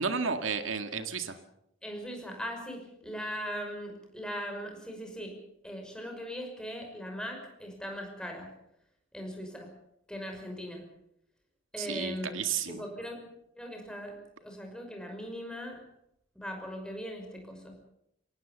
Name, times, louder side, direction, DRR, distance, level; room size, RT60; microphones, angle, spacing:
voice 1, 0.0-1.4 11.8-12.8, right 5 dB, 80° right, 7 dB, 1.9 m, -32 dB
voice 2, 1.8-8.6 9.1-9.8 10.1-10.9 11.7-15.9 16.3-17.8, equal, 5° left, 3 dB, 5.8 m, -40 dB
25.0 x 18.5 x 7.3 m, 0.78 s
head